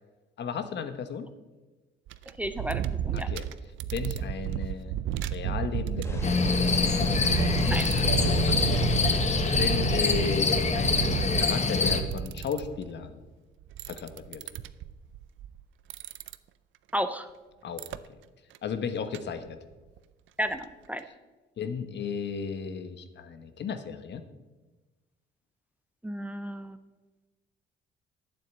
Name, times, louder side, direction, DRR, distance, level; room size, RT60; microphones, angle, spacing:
voice 1, 0.4-1.3 3.1-3.4 3.9-4.9 5.3-6.5 8.4-9.3 9.5-10.9 11.4-13.3 13.9-14.4 17.6-17.8 18.6-19.6 21.6-24.2, left 6 dB, 60° left, 10 dB, 1.2 m, -34 dB
sound 1, 2.1-12.9 13.6-15.6 15.9-16.3 17.8-18.0 18.5-18.8 19.1-19.2 19.4-19.5 19.9-20.0 20.4-20.5 21.0-21.1, right 10 dB, 80° right, 0.5 m, -32 dB
voice 2, 2.4-3.3 7.7-7.9 16.9-17.3 20.4-21.0 26.0-26.8, equal, 5° right, 9 dB, 0.7 m, -32 dB
sound 2, 6.0-11.3, left 1 dB, 15° left, 1.5 m, -36 dB
sound 3, 6.2-12.0, left 4 dB, 35° left, 1.2 m, -25 dB
9.0 x 7.6 x 8.0 m, 1.2 s
cardioid pair, 90°, 20 cm